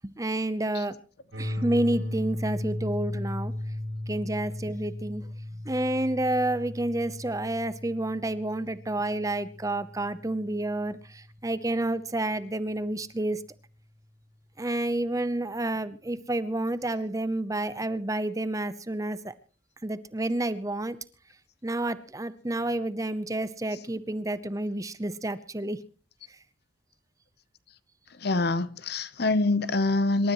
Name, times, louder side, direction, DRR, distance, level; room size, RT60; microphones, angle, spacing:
voice 1, 0.0-0.9 1.4-3.5 4.1-5.3 5.6-13.4 14.6-19.3 19.8-21.0 21.6-25.8, right 1 dB, 15° right, 0.7 m, -29 dB
sound 1, 1.3-11.2, left 1 dB, 80° right, 6.4 m, -36 dB
voice 2, 28.2-30.3, left 2 dB, 55° left, 0.8 m, -25 dB
27.0 x 13.0 x 3.1 m
head